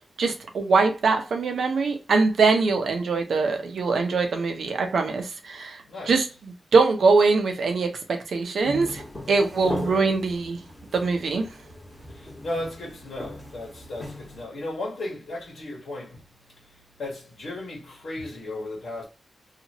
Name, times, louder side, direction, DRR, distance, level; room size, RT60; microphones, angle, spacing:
voice 1, 0.2-9.0 9.3-10.6 10.9-11.5, right 4 dB, 75° right, 0.7 m, -23 dB
sound 1, 8.6-14.4, left 1 dB, 15° left, 1.4 m, -38 dB
voice 2, 9.7-10.0 12.1-16.2 17.0-19.0, left 2 dB, 70° left, 1.2 m, -35 dB
2.9 x 2.4 x 2.9 m
wide cardioid pair, 125°, 0 cm